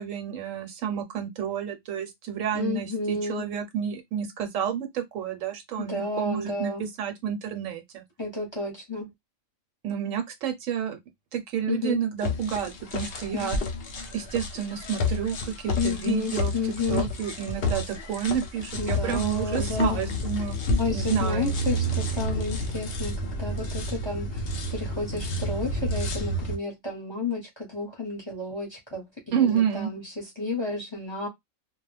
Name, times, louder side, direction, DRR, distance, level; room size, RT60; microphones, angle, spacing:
voice 1, 0.0-8.0 9.8-11.0 11.3-13.6 14.1-16.5 16.9-20.6 20.9-21.6 29.3-29.9, right 8 dB, 75° right, 1.0 m, -30 dB
voice 2, 2.5-3.5 5.8-6.8 8.2-9.1 11.7-12.0 13.3-13.5 15.8-17.0 18.8-20.1 20.8-24.4 24.7-31.3, left 3 dB, 25° left, 0.8 m, -31 dB
sound 1, 12.2-26.6, left 1 dB, 55° left, 0.7 m, -30 dB
2.3 x 2.1 x 3.1 m
omnidirectional pair, 1.4 m